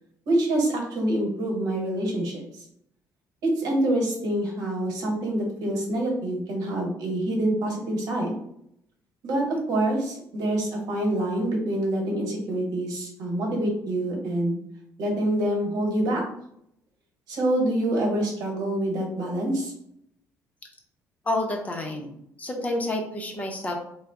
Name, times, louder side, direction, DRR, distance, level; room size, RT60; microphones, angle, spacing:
voice 1, 0.3-2.4 3.4-8.4 9.2-14.6 15.0-16.2 17.3-19.7, right 1 dB, 75° right, 0 dB, 1.2 m, -26 dB
voice 2, 21.3-23.8, left 1 dB, 25° left, 2 dB, 0.6 m, -29 dB
3.4 x 2.1 x 3.6 m, 0.72 s
cardioid pair, 110°, 6 cm